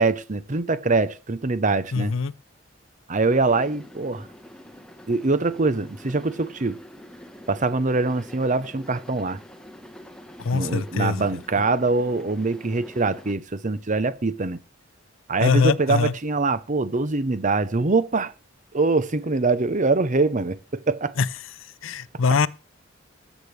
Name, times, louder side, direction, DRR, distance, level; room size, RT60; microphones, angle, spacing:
voice 1, 0.0-2.1 3.1-4.3 5.1-6.8 7.5-9.4 10.5-14.6 15.3-18.3 18.7-21.1, right 3 dB, 40° right, 0.8 m, -23 dB
voice 2, 1.9-2.3 10.4-11.2 15.4-16.1 21.2-21.3 21.8-22.5, left 4 dB, 75° left, 0.6 m, -22 dB
sound 1, 3.2-13.3, equal, 5° left, 1.2 m, -45 dB
20.0 x 8.2 x 3.3 m
head